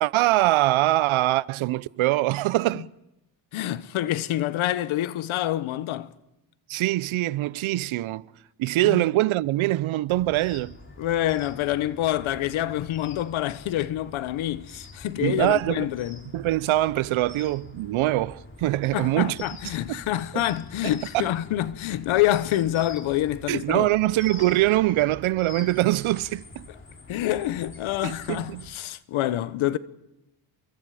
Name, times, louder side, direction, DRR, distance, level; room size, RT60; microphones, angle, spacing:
voice 1, 0.0-2.9 6.7-8.2 8.6-10.8 15.2-15.9 16.3-19.4 19.9-20.0 20.3-20.4 21.1-21.3 23.5-26.7 28.0-28.6, right 16 dB, 80° right, 0.8 m, -23 dB
voice 2, 3.5-6.1 8.8-9.0 11.0-16.2 18.9-23.9 27.1-29.8, left 13 dB, 85° left, 1.3 m, -27 dB
sound 1, 10.1-28.7, left 3 dB, 25° left, 3.7 m, -46 dB
29.0 x 23.5 x 5.0 m
cardioid pair, 130°, 47 cm